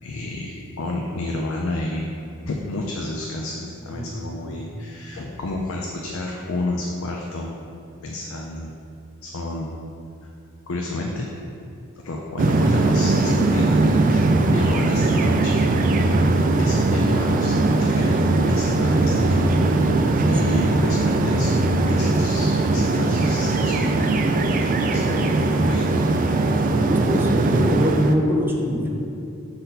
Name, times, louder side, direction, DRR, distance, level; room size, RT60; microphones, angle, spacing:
voice 1, 0.0-2.1 2.4-7.5 8.0-8.7 9.2-9.8 10.2-10.3 10.7-11.3 12.0-15.9 16.3-20.0 20.2-26.1, left 2 dB, 80° left, 0 dB, 0.5 m, -31 dB
sound 1, 12.4-28.1, right 2 dB, 40° right, 0.3 m, -20 dB
voice 2, 26.9-28.9, equal, 10° right, -1 dB, 0.7 m, -23 dB
6.6 x 4.2 x 4.0 m, 2.6 s
head